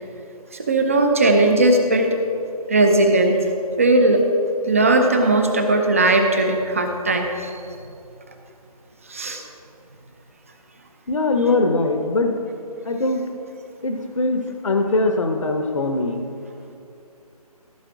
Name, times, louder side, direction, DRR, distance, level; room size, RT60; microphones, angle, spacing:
voice 1, 0.5-2.2 2.7-3.4 3.8-4.2 4.6-7.5 9.1-9.4, right 2 dB, 20° right, 5 dB, 0.6 m, -18 dB
voice 2, 11.1-12.4 12.8-13.3 13.8-16.2, left 2 dB, 55° left, 5 dB, 0.9 m, -21 dB
14.5 x 6.5 x 4.8 m, 2.6 s
figure-of-eight pair, 155°, 20 cm